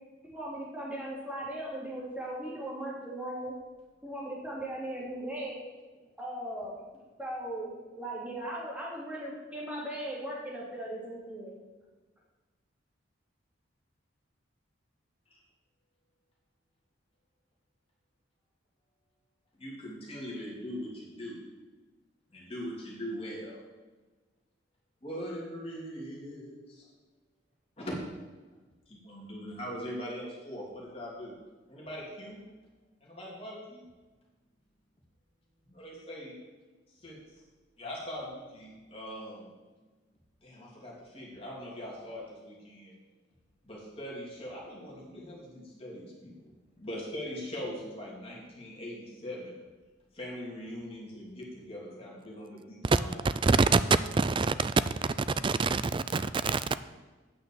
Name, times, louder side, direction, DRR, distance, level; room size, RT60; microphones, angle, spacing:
voice 1, 0.2-3.5 4.0-5.6 6.2-6.8 7.2-11.6, right 1 dB, 5° right, -5 dB, 2.7 m, -38 dB
voice 2, 19.6-21.4 22.3-23.6 25.0-26.9 27.8-27.9 28.9-31.4 31.7-32.4 33.0-33.9 35.6-36.4 37.0-37.2 37.8-39.5 40.4-42.9 43.6-46.3 46.8-49.5 50.1-53.2, equal, 30° left, -4 dB, 3.0 m, -41 dB
voice 3, 53.2-53.8 54.1-54.7 55.4-56.7, right 4 dB, 25° right, 14 dB, 0.3 m, -26 dB
9.2 x 6.2 x 7.1 m, 1.2 s
head